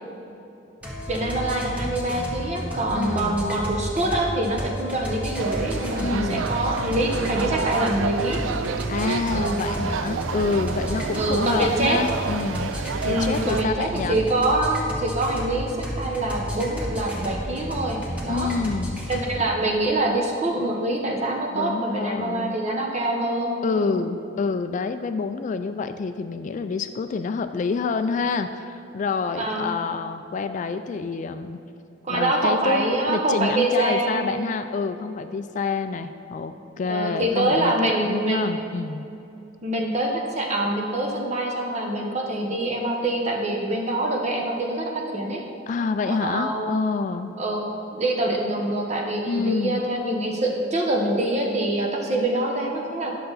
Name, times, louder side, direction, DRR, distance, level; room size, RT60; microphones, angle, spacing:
sound 1, 0.8-19.3, equal, 10° right, 1.2 m, -32 dB
voice 1, 1.1-8.4 9.3-9.6 11.1-12.0 13.0-18.5 19.1-24.1 29.4-29.7 32.0-34.3 36.8-38.6 39.6-45.4 46.1-46.8 47.4-53.2, right 1 dB, 35° right, 0 dB, 1.1 m, -25 dB
voice 2, 3.0-3.4 6.0-6.5 8.9-12.8 13.0-14.2 18.3-19.0 21.5-22.6 23.6-31.6 32.1-39.1 45.7-47.3 49.3-49.8, left 4 dB, 40° left, 9 dB, 0.3 m, -27 dB
sound 2, 5.4-13.6, right 6 dB, 85° right, 0.4 m, -30 dB
10.0 x 6.6 x 4.0 m, 2.8 s
head